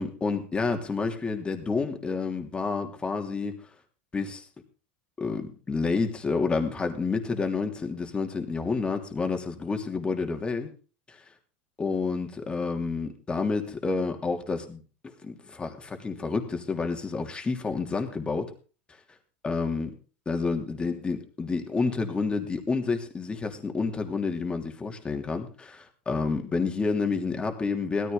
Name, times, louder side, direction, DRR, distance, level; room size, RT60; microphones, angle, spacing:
voice 1, 0.0-3.6 4.1-4.4 5.2-10.7 11.1-11.2 11.8-18.5 19.4-19.9 20.3-28.1, left 4 dB, 15° left, 5 dB, 2.9 m, -29 dB
16.5 x 14.0 x 3.9 m, 0.36 s
supercardioid pair, 120°, 6 cm